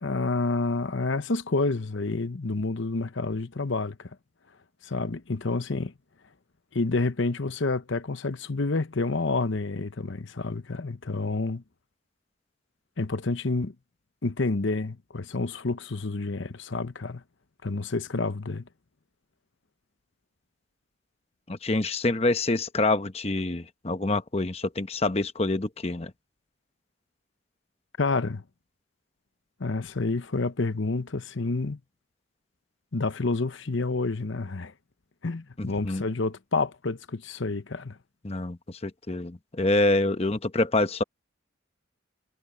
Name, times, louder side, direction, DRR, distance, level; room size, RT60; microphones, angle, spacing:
voice 1, 0.0-4.1 4.8-5.9 6.7-11.6 13.0-13.7 14.2-17.2 17.6-18.6 28.0-28.4 29.6-31.8 32.9-34.7 35.2-38.0, left 3 dB, 65° left, 0.9 m, -29 dB
voice 2, 21.5-26.1 35.6-36.0 38.2-41.0, left 2 dB, 30° left, 0.9 m, -26 dB
head